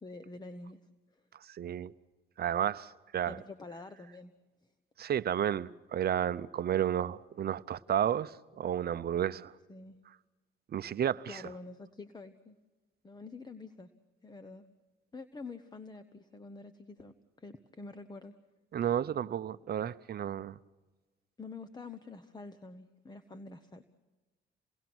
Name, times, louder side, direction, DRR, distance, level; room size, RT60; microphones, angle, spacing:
voice 1, 0.0-0.8 1.1-1.2 3.3-4.3 9.7-10.0 11.3-12.6 13.0-13.9 14.2-14.6 15.1-18.3 21.4-23.9, left 3 dB, 20° left, 1.1 m, -47 dB
voice 2, 1.5-1.9 2.4-3.4 5.0-9.5 10.7-11.4 18.7-20.6, right 10 dB, 50° right, 0.7 m, -32 dB
28.5 x 19.0 x 6.1 m
cardioid pair, 90°, 20 cm